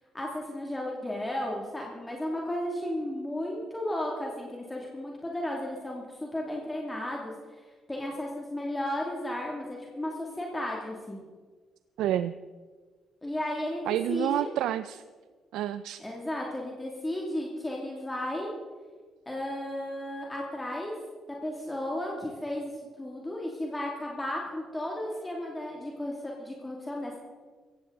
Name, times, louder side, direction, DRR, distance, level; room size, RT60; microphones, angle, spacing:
voice 1, 0.1-11.2 13.2-14.5 16.0-18.5 19.3-20.9 21.4-22.7 23.0-27.2, left 1 dB, 15° left, -2 dB, 2.6 m, -34 dB
voice 2, 12.0-12.3 13.9-15.0 15.5-16.0, right 12 dB, 85° right, 13 dB, 0.4 m, -29 dB
16.0 x 15.5 x 4.0 m, 1.5 s
cardioid pair, 90°, 0 cm